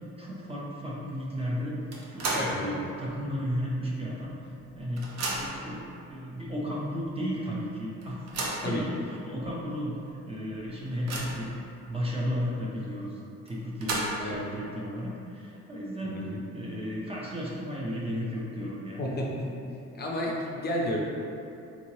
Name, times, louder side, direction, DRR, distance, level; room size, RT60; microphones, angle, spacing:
voice 1, 0.2-1.8 2.1-4.5 4.7-8.2 8.6-8.9 9.2-11.5 11.9-13.1 13.5-16.2 16.5-19.0, equal, 20° right, -5 dB, 0.4 m, -34 dB
sound 1, 1.9-2.6 3.0-3.1 4.2-4.3 4.6-5.7 6.5-6.6 7.0-7.1 8.0-8.7 9.4-9.5 9.9-10.0 10.5-11.5 13.5-14.4, right 2 dB, 65° right, 0.6 m, -33 dB
voice 2, 2.3-2.7 8.6-8.9 14.2-14.4 16.0-16.3 19.0-19.5 19.9-21.0, left 1 dB, 35° left, -2 dB, 0.5 m, -31 dB
3.7 x 3.0 x 2.7 m, 2.7 s
cardioid pair, 140°, 29 cm